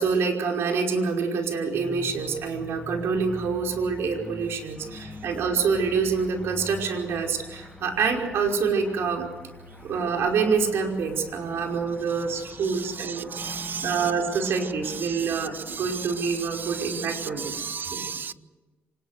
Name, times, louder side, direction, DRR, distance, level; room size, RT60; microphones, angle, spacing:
voice 1, 0.0-9.3 9.8-13.3 13.8-17.5 17.9-18.1, right 5 dB, 75° right, 2 dB, 5.2 m, -26 dB
sound 1, 1.7-17.7, left 2 dB, 20° left, 6.8 m, -44 dB
voice 2, 12.4-14.1 14.4-18.3, right 6 dB, 50° right, 15 dB, 1.0 m, -36 dB
25.5 x 21.0 x 6.6 m, 1.2 s
cardioid pair, 75°, 4 cm